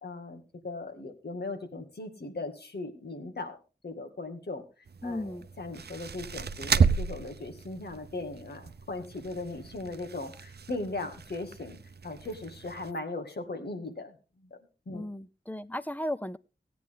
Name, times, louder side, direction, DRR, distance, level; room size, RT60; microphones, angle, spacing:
voice 1, 0.0-3.6 3.8-4.6 5.0-11.8 12.0-14.1 14.4-14.6 14.9-15.0, left 2 dB, 85° left, 5 dB, 2.1 m, -38 dB
sound 1, 4.9-12.9, right 5 dB, 90° right, 0.6 m, -33 dB
voice 2, 5.0-5.5 14.9-16.4, left 1 dB, 10° left, 16 dB, 0.5 m, -35 dB
16.5 x 9.3 x 3.7 m, 0.32 s
wide cardioid pair, 80°, 16 cm